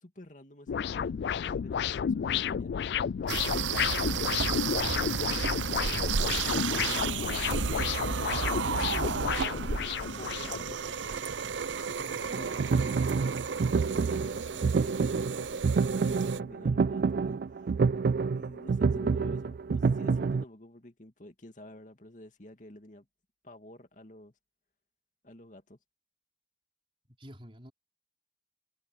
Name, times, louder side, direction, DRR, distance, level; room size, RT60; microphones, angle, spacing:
voice 1, 0.0-2.7 3.2-5.5 5.8-11.2 11.9-13.3 13.7-17.4 17.9-23.1 23.4-24.3 25.2-25.8, left 1 dB, 45° left, 2.5 m, -50 dB
sound 1, 0.7-10.7, left 8 dB, 65° left, 0.3 m, -31 dB
sound 2, 3.3-16.4, right 6 dB, 85° right, 0.7 m, -33 dB
voice 2, 12.2-12.7 27.1-27.7, equal, 30° right, 4.7 m, -48 dB
sound 3, 12.3-20.4, right 5 dB, 55° right, 0.3 m, -28 dB
head